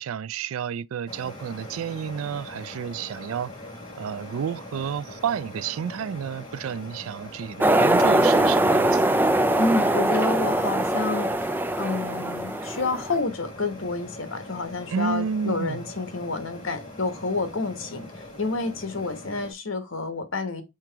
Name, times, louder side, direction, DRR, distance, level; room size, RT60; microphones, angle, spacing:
voice 1, 0.0-3.5 4.0-9.2 14.9-15.8, right 7 dB, 85° right, 0.3 m, -30 dB
sound 1, 1.1-19.5, left 1 dB, 30° left, 4.9 m, -42 dB
sound 2, 7.6-13.2, right 1 dB, 10° right, 0.4 m, -22 dB
voice 2, 9.6-20.6, left 3 dB, 75° left, 1.3 m, -29 dB
7.4 x 3.8 x 4.6 m
head